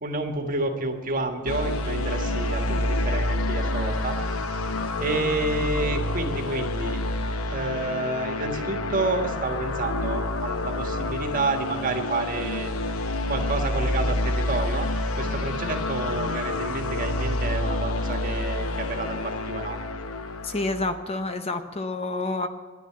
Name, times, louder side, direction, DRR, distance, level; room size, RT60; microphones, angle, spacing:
voice 1, 0.0-4.2 5.0-7.0 7.5-12.7 13.3-14.9 15.2-19.8, right 2 dB, 40° right, 4 dB, 1.5 m, -29 dB
sound 1, 1.5-20.9, left 2 dB, 85° left, 0.9 m, -28 dB
voice 2, 20.4-22.5, left 2 dB, 30° left, 8 dB, 0.7 m, -28 dB
10.5 x 10.5 x 8.7 m, 1.5 s
head